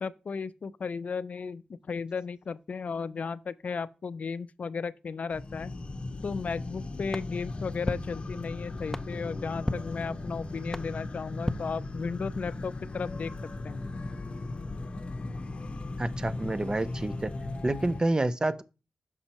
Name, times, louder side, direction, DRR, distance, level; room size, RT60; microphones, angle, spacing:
voice 1, 0.0-5.7 6.2-13.3 13.6-13.8, left 5 dB, 60° left, 0.4 m, -35 dB
sound 1, 5.3-18.0, left 2 dB, 45° left, 0.8 m, -37 dB
sound 2, 7.1-12.4, left 1 dB, 10° left, 0.6 m, -38 dB
voice 2, 16.0-17.3 17.6-18.6, right 2 dB, 25° right, 0.5 m, -28 dB
6.3 x 5.3 x 3.0 m
cardioid pair, 50°, 3 cm